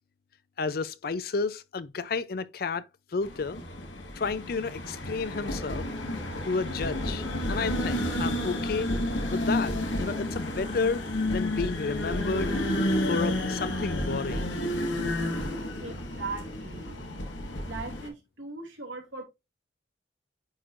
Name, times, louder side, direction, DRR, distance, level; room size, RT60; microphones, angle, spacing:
voice 1, 0.6-2.9 3.1-3.6 4.1-5.8 6.4-8.9 9.3-9.7 10.0-11.0 11.3-12.5 13.1-14.4, left 4 dB, 50° left, 0.4 m, -31 dB
sound 1, 3.2-18.1, left 1 dB, 85° left, 1.5 m, -31 dB
voice 2, 15.8-17.0 17.7-19.2, right 3 dB, 85° right, 2.6 m, -39 dB
9.5 x 4.4 x 2.5 m
head